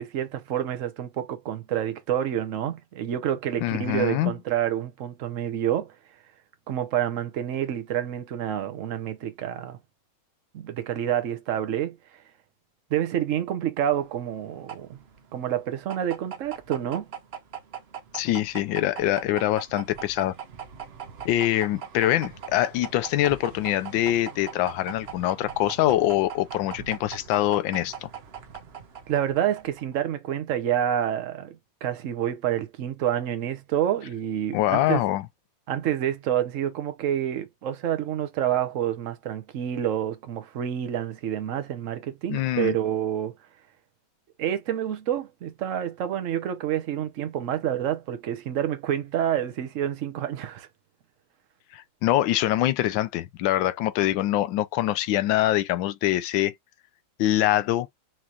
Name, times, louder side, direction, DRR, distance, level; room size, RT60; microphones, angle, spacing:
voice 1, 0.0-5.9 6.7-9.8 10.5-12.0 12.9-15.0 15.3-17.1 29.1-35.0 35.7-43.3 44.4-50.7, right 10 dB, 60° right, 0.9 m, -28 dB
voice 2, 3.6-4.3 18.1-20.3 21.2-28.1 34.5-35.3 42.3-42.8 51.7-56.5 57.2-57.9, left 14 dB, 75° left, 1.3 m, -24 dB
sound 1, 13.9-29.9, right 8 dB, 90° right, 0.5 m, -41 dB
6.1 x 2.8 x 2.4 m
omnidirectional pair, 2.2 m